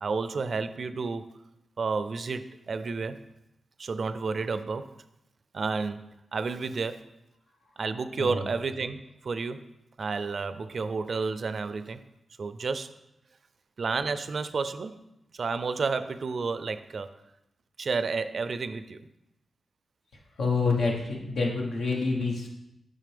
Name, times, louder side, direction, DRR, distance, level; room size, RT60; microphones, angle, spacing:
voice 1, 0.0-1.4 1.8-3.2 3.8-5.0 5.5-7.1 7.8-9.7 10.0-12.0 12.4-12.9 13.8-15.0 15.3-17.1 17.8-19.1, right 4 dB, 60° right, 12 dB, 0.4 m, -31 dB
voice 2, 20.4-22.5, left 4 dB, 90° left, -1 dB, 1.2 m, -27 dB
7.4 x 5.3 x 3.4 m, 0.88 s
cardioid pair, 80°, 0 cm